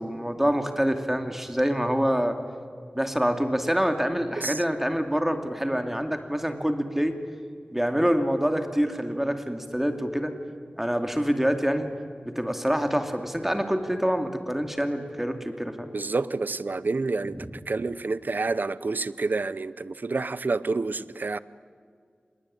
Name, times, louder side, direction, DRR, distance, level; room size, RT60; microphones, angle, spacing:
voice 1, 0.0-2.4 2.9-7.2 7.7-10.3 10.8-11.9 12.3-15.9, equal, 10° right, 2.5 m, -26 dB
voice 2, 15.9-21.4, right 3 dB, 70° right, 0.8 m, -28 dB
26.5 x 21.0 x 9.9 m
wide cardioid pair, 65°, 3 cm